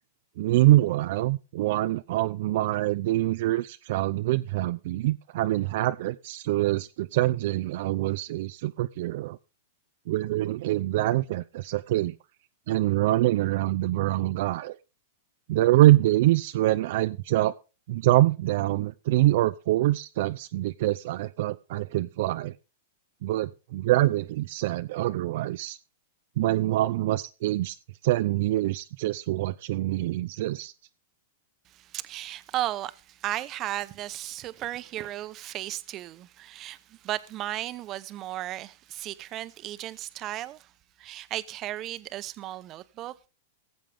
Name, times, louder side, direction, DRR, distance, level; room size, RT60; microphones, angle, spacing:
voice 1, 0.4-9.4 10.1-12.2 12.7-14.8 15.5-17.5 17.9-22.5 23.2-25.8 26.4-27.7 28.0-30.7, right 16 dB, 60° right, 0.4 m, -25 dB
voice 2, 31.7-40.7 41.0-43.1, right 14 dB, 35° right, 0.8 m, -35 dB
18.5 x 7.5 x 3.5 m
hypercardioid pair, 120°, 0 cm